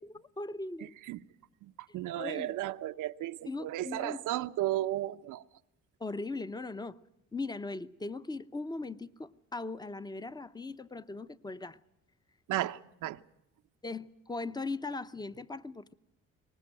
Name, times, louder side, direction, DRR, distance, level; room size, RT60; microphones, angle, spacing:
voice 1, 0.0-0.9 2.2-2.5 3.5-4.2 6.0-7.0 7.3-11.8 13.8-15.9, left 3 dB, 15° left, 0.7 m, -39 dB
voice 2, 0.8-1.2 1.6-5.4 12.5-13.2, right 14 dB, 85° right, 0.8 m, -34 dB
23.0 x 19.5 x 7.6 m
cardioid pair, 90°, 30 cm